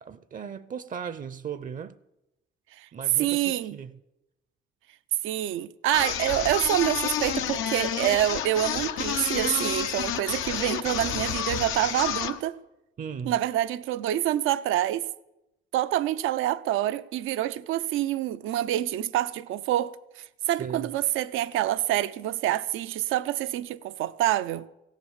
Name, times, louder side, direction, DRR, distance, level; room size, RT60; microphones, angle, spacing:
voice 1, 0.0-2.0 2.9-3.9 13.0-13.3 20.6-20.9, right 7 dB, 40° right, 0.5 m, -37 dB
voice 2, 3.2-3.8 5.2-12.6 13.3-15.1 15.7-24.7, right 13 dB, 90° right, 0.5 m, -27 dB
sound 1, 5.9-12.4, left 10 dB, 90° left, 0.7 m, -30 dB
16.5 x 7.4 x 7.2 m
cardioid pair, 90°, 20 cm